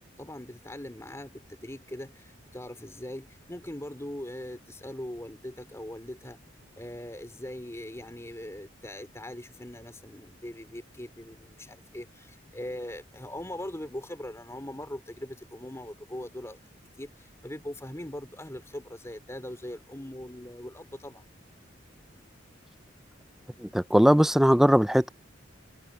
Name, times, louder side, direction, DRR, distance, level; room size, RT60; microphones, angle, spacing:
voice 1, 0.0-6.4 6.8-16.6 17.0-21.3, left 1 dB, 15° left, 3.4 m, -41 dB
voice 2, 23.6-25.1, equal, ahead, 0.3 m, -20 dB
head